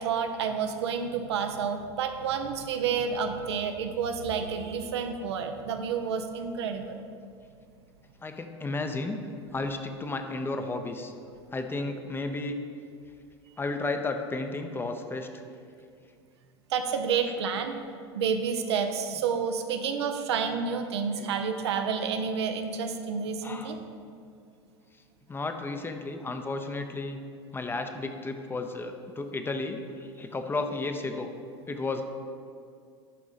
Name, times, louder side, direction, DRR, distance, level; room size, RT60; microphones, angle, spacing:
voice 1, 0.0-7.0 16.7-17.8 18.1-23.8, right 6 dB, 75° right, 6 dB, 0.6 m, -29 dB
voice 2, 8.2-9.2 9.5-11.1 11.5-12.6 13.6-15.3 21.2-21.3 23.4-23.8 25.3-27.2 27.5-31.3 31.7-32.0, left 3 dB, 15° left, 6 dB, 0.6 m, -33 dB
11.0 x 3.7 x 4.1 m, 2.3 s
hypercardioid pair, 90°, 14 cm